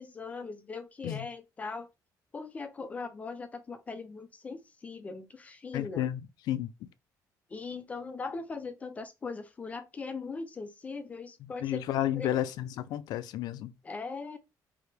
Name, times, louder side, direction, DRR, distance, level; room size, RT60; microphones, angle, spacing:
voice 1, 0.0-1.9 2.3-6.1 7.5-11.8 12.1-12.4 13.8-14.4, left 4 dB, 20° left, 0.4 m, -40 dB
voice 2, 5.7-6.2 6.5-6.7 11.6-13.7, left 12 dB, 70° left, 0.5 m, -31 dB
4.9 x 2.8 x 3.3 m
cardioid pair, 170°, 7 cm